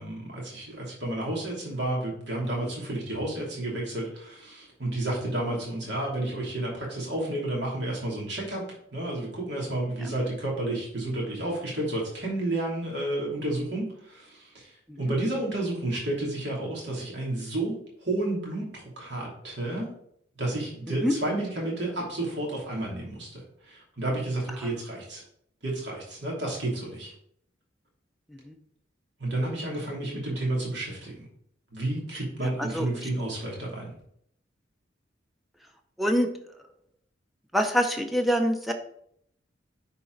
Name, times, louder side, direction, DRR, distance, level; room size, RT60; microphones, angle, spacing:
voice 1, 0.0-8.6 8.9-14.7 15.0-19.9 20.4-25.2 25.6-27.1 29.2-31.1 31.7-33.9, right 1 dB, 65° right, -3 dB, 2.8 m, -31 dB
voice 2, 36.0-36.3 37.5-38.7, equal, ahead, 4 dB, 0.6 m, -25 dB
9.9 x 4.2 x 4.0 m, 0.68 s
head